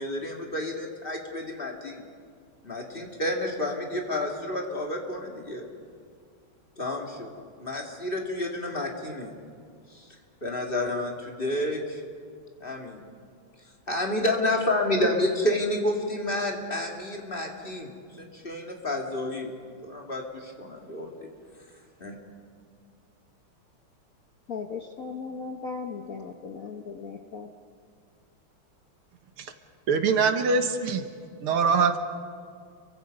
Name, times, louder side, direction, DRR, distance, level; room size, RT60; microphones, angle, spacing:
voice 1, 0.0-2.0 2.6-5.6 6.8-7.3 7.6-9.3 9.9-10.1 10.4-12.0 12.6-13.0 13.9-19.5 19.8-21.1 22.0-22.1, left 1 dB, 25° left, 0 dB, 2.6 m, -30 dB
voice 2, 24.5-27.5, left 5 dB, 50° left, 4 dB, 1.2 m, -37 dB
voice 3, 29.9-31.1 31.4-32.0, right 5 dB, 80° right, 7 dB, 2.2 m, -23 dB
30.0 x 23.5 x 5.4 m, 2.2 s
omnidirectional pair, 2.4 m